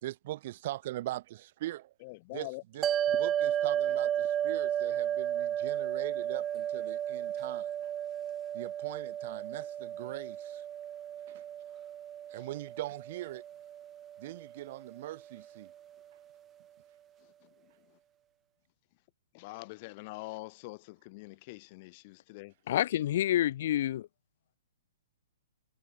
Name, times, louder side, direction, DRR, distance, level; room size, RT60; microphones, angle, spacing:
voice 1, 0.0-1.9 2.3-7.7 8.5-10.6 11.3-11.4 12.3-13.4 14.2-15.7, right 15 dB, 45° right, 2.8 m, -41 dB
voice 2, 2.0-2.6 3.1-3.2 12.3-12.5 17.4-17.7 19.3-22.5, left 24 dB, 35° left, 2.5 m, -45 dB
sound 1, 2.8-15.3, right 10 dB, 15° right, 3.9 m, -34 dB
voice 3, 22.7-24.1, left 12 dB, 50° left, 3.3 m, -28 dB
hypercardioid pair, 155°, 0 cm